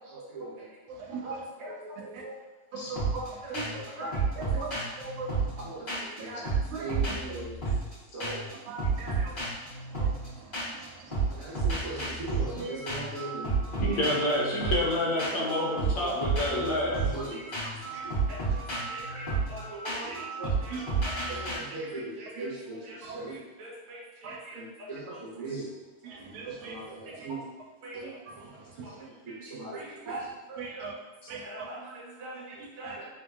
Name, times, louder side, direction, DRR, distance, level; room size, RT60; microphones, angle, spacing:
voice 1, 0.1-0.5 1.2-2.3 3.9-4.1 4.5-4.8 5.6-5.9 6.2-6.4 6.8-7.5 8.1-8.4 11.4-14.0 15.3-15.9 16.5-17.4 17.9-18.0 18.3-18.4 18.9-20.1 20.4-20.8 21.3-23.3 23.6-25.7 26.5-27.4 27.8-28.1 29.3-30.2 30.7-30.9 31.4-33.1, right 2 dB, 55° right, -5 dB, 0.9 m, -39 dB
voice 2, 0.9-1.4 2.1-2.2 2.7-4.7 5.0-5.3 6.2-6.4 6.7-7.0 8.7-9.3 10.0-10.1 10.8-10.9 20.0-20.2 20.7-20.8 21.2-21.4 23.0-23.2 24.2-24.4 26.0-26.7 27.9-28.0 30.1-30.2 30.6-30.9 31.3-31.4 32.8-33.0, right 4 dB, 80° right, 0 dB, 1.4 m, -39 dB
sound 1, 3.0-3.3 3.5-3.9 4.1-6.2 6.4-7.9 8.2-8.5 8.8-10.8 11.1-21.5, right 4 dB, 50° left, 0.6 m, -31 dB
voice 3, 13.8-17.0 19.1-19.2 25.5-25.6 28.0-28.1, left 1 dB, 75° left, -4 dB, 1.2 m, -29 dB
3.2 x 2.7 x 2.3 m, 1.2 s
omnidirectional pair, 2.3 m